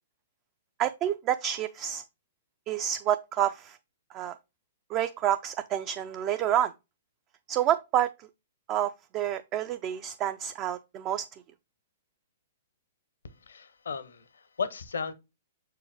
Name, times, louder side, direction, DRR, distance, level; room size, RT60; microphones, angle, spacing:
voice 1, 0.8-2.0 2.7-3.8 4.1-4.4 4.9-6.7 7.5-8.3 8.7-11.4, right 11 dB, 30° right, 0.4 m, -29 dB
voice 2, 13.4-15.1, left 6 dB, 75° left, 0.8 m, -35 dB
6.8 x 4.7 x 3.4 m
figure-of-eight pair, 115°, 0 cm